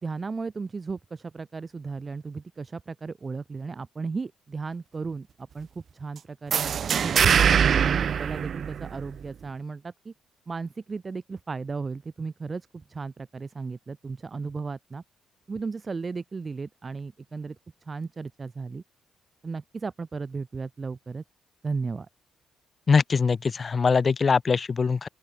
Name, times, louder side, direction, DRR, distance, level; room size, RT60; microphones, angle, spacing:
voice 1, 0.0-6.6 7.0-10.1 10.5-15.0 15.5-17.6 17.9-18.8 19.4-21.2 21.6-22.1, right 4 dB, 30° right, 1.5 m, -35 dB
sound 1, 6.5-9.2, right 8 dB, 55° right, 1.7 m, -22 dB
voice 2, 22.9-25.1, left 5 dB, 40° left, 0.3 m, -22 dB
open air
cardioid pair, 90°, 0 cm